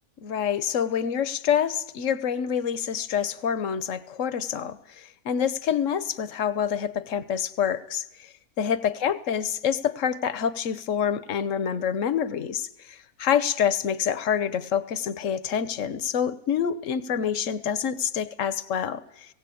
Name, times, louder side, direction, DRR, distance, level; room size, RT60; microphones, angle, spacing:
voice 1, 0.2-8.3 8.6-19.3, left 8 dB, 55° left, 15 dB, 1.3 m, -27 dB
19.0 x 17.0 x 8.6 m, 0.79 s
omnidirectional pair, 1.7 m